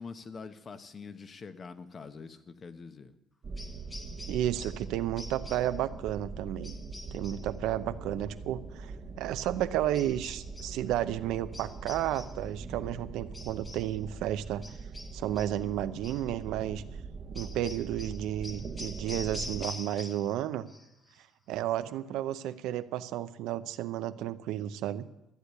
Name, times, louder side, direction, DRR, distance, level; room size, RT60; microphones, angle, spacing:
voice 1, 0.0-3.1, left 5 dB, 40° left, 10 dB, 1.0 m, -45 dB
sound 1, 3.4-19.7, right 4 dB, 45° right, 1.0 m, -42 dB
sound 2, 3.6-4.9 5.2-5.8 6.6-7.5 9.9-10.8 11.5-12.5 13.3-14.0 14.6-15.6 16.0-16.3 17.3-20.4 20.7-21.2, left 2 dB, 20° left, 1.5 m, -46 dB
voice 2, 4.3-6.7 7.1-14.7 15.1-16.8 17.3-20.7 21.5-25.1, right 12 dB, 85° right, 11 dB, 0.7 m, -32 dB
14.0 x 8.3 x 8.1 m, 0.87 s
cardioid pair, 105°, 0 cm